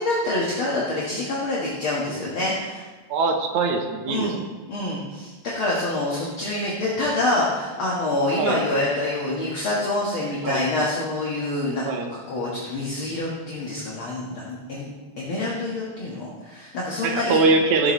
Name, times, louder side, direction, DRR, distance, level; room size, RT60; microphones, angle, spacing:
voice 1, 0.0-2.8 4.1-4.4 4.7-11.8 12.1-14.9 15.2-17.4 17.8-17.9, left 2 dB, 50° left, -5 dB, 2.1 m, -26 dB
voice 2, 3.1-4.5 8.4-8.6 10.4-10.7 11.9-12.1 17.0-17.9, right 3 dB, 75° right, 4 dB, 2.3 m, -22 dB
15.0 x 7.9 x 3.1 m, 1.3 s
omnidirectional pair, 3.4 m